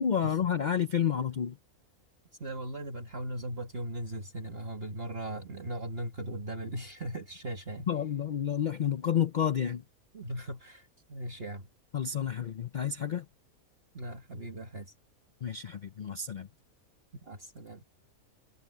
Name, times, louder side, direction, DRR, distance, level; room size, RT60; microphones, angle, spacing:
voice 1, 0.0-1.6 7.9-9.8 11.9-13.2 15.4-16.5, left 8 dB, 65° left, 0.4 m, -30 dB
voice 2, 2.4-7.9 10.1-11.7 13.9-14.9 17.2-17.8, right 1 dB, 45° right, 2.2 m, -38 dB
omnidirectional pair, 1.5 m